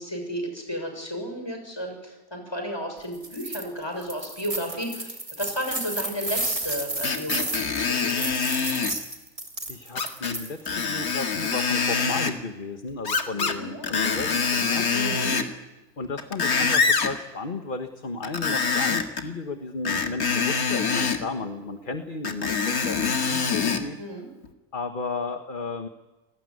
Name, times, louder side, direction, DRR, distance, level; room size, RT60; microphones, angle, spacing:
voice 1, 0.0-8.5 13.3-13.9 14.9-15.4 24.0-24.3, equal, 15° left, 3 dB, 6.6 m, -33 dB
sound 1, 3.1-3.6 4.0-10.7, right 2 dB, 20° right, 2.8 m, -32 dB
Screech, 7.0-9.0 10.0-10.4 10.7-12.3 13.0-13.6 13.8-15.5 16.0-17.1 18.2-19.2 19.9-21.2 22.2-23.8 24.4-24.5, left 5 dB, 60° left, 2.5 m, -25 dB
voice 2, 9.7-14.9 16.0-24.0 24.7-25.9, left 3 dB, 30° left, 7 dB, 1.5 m, -33 dB
30.0 x 19.0 x 9.7 m, 1.1 s
omnidirectional pair, 1.7 m